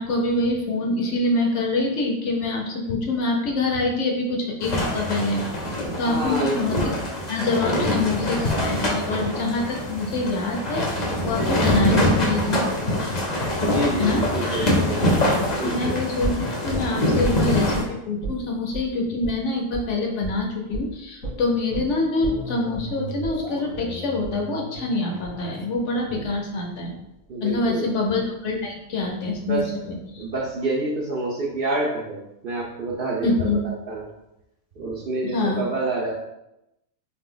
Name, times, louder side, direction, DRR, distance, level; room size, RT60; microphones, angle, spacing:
voice 1, 0.0-5.4 6.0-6.8 7.3-12.7 14.0-14.2 15.6-27.0 27.4-30.2 33.2-33.6 35.2-35.6, left 2 dB, 65° left, 0 dB, 0.9 m, -25 dB
sound 1, 4.6-17.8, left 1 dB, 40° left, 0.7 m, -24 dB
voice 2, 6.0-7.0 7.6-8.0 13.6-15.1 15.5-16.0 27.3-27.9 29.4-29.7 30.2-34.1 34.8-36.1, right 2 dB, 55° right, -3 dB, 0.6 m, -28 dB
sound 2, 16.2-17.8 18.2-18.4 18.7-18.9 19.2-19.4 19.7-19.9 20.2-20.4 20.7-20.9 21.2-27.2 27.5-27.6, right 2 dB, 85° left, 1.9 m, -34 dB
4.0 x 2.5 x 3.7 m, 0.88 s
omnidirectional pair, 1.4 m